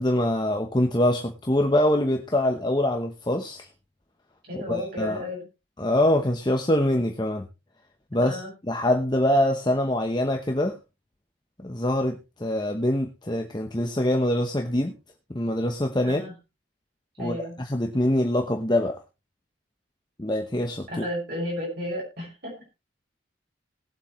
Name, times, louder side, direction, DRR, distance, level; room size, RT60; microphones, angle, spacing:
voice 1, 0.0-3.7 4.7-5.2 5.8-7.5 8.1-8.4 8.7-10.8 11.6-14.9 15.3-16.2 17.2-19.0 20.2-21.0, left 1 dB, 20° left, 4 dB, 1.0 m, -24 dB
voice 2, 4.5-5.5 8.2-8.5 16.0-16.3 17.2-17.6 20.9-22.5, left 1 dB, 50° right, -2 dB, 6.1 m, -33 dB
20.0 x 7.8 x 3.2 m, 0.27 s
head